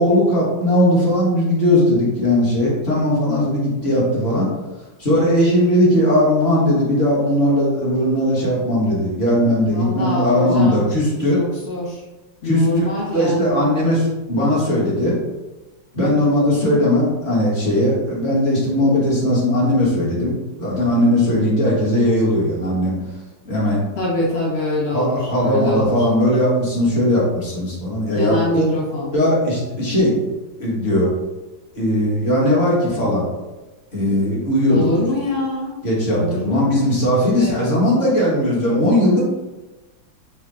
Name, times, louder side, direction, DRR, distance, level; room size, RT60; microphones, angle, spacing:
voice 1, 0.0-4.5 5.0-11.4 12.4-12.9 13.1-15.2 15.9-23.0 23.4-23.9 24.9-28.7 29.1-30.2 30.6-31.1 31.8-33.3 33.9-34.9 35.8-39.2, left 1 dB, 35° left, -6 dB, 1.2 m, -18 dB
voice 2, 9.7-10.9 11.3-12.0 12.4-13.7 24.0-26.1 28.1-29.1 34.7-35.8 36.1-36.6 37.2-37.6, left 1 dB, 65° left, -4 dB, 0.6 m, -24 dB
4.6 x 2.2 x 3.7 m, 1.1 s
omnidirectional pair, 2.1 m